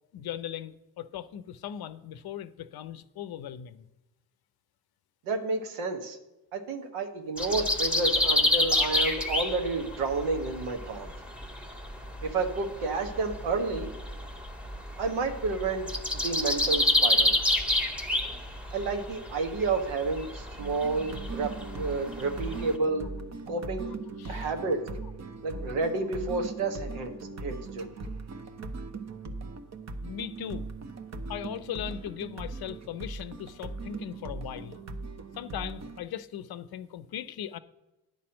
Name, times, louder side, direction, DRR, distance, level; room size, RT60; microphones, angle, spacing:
voice 1, 0.1-3.9 24.2-24.5 30.0-30.7 31.3-34.8 35.4-37.6, left 10 dB, 50° left, 0.6 m, -38 dB
voice 2, 5.2-6.2 6.5-11.1 12.2-13.9 15.0-17.3 18.7-23.1 23.5-23.9 24.3-24.8 25.4-27.8, right 3 dB, 75° right, 1.3 m, -30 dB
sound 1, 7.4-22.7, left 1 dB, ahead, 1.3 m, -29 dB
sound 2, 20.6-36.0, right 3 dB, 35° right, 0.9 m, -39 dB
9.9 x 4.2 x 7.6 m
hypercardioid pair, 50°, 48 cm